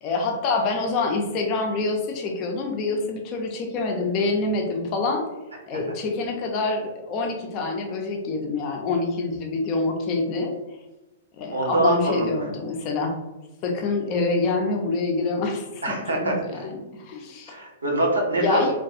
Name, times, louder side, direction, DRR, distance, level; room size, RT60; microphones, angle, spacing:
voice 1, 0.0-5.3 5.7-10.5 11.4-13.1 13.6-15.8 16.2-17.6 18.4-18.7, left 3 dB, 35° left, 2 dB, 0.5 m, -26 dB
voice 2, 11.5-12.4 15.8-16.3 17.5-18.7, right 1 dB, 75° right, -1 dB, 0.7 m, -24 dB
2.3 x 2.3 x 2.6 m, 1.1 s
figure-of-eight pair, 105°, 0 cm